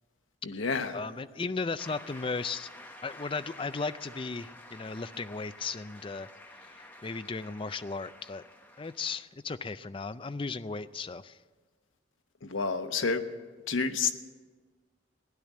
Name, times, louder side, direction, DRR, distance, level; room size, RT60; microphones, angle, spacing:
voice 1, 0.4-1.0 12.4-13.3 13.7-14.1, left 4 dB, 90° left, 7 dB, 1.1 m, -29 dB
voice 2, 0.9-2.7 3.0-6.3 6.6-8.4 8.8-11.4, left 4 dB, 25° left, 12 dB, 0.4 m, -36 dB
Shout / Cheering / Applause, 1.8-9.2, left 1 dB, 10° left, 1.0 m, -50 dB
16.5 x 10.5 x 8.4 m, 1.4 s
head